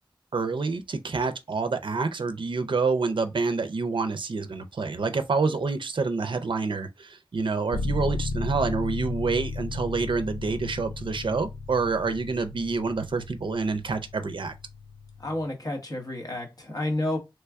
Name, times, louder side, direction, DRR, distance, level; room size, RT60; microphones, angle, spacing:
voice 1, 0.3-14.5, right 4 dB, 65° right, 0.4 m, -27 dB
sound 1, 7.7-15.5, left 3 dB, 75° left, 0.4 m, -34 dB
voice 2, 15.2-17.2, left 1 dB, 45° left, 1.1 m, -30 dB
3.1 x 2.2 x 3.4 m
wide cardioid pair, 60°, 9 cm